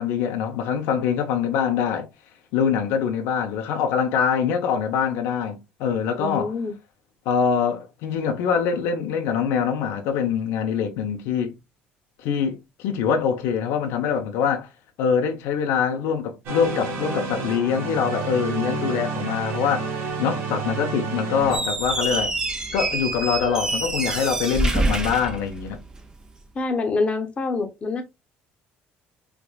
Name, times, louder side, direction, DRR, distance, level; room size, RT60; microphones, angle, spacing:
voice 1, 0.0-2.1 2.5-6.5 7.3-11.6 12.2-14.7 15.0-19.9 20.2-22.3 22.7-25.8, left 7 dB, 85° left, 0.8 m, -24 dB
voice 2, 6.2-6.7 26.5-28.0, left 3 dB, 30° left, 0.9 m, -26 dB
sound 1, 16.5-21.6, right 4 dB, 65° right, 1.6 m, -29 dB
Squeak, 21.4-26.1, right 2 dB, 15° right, 0.6 m, -26 dB
4.7 x 2.5 x 2.3 m
cardioid pair, 120°, 4 cm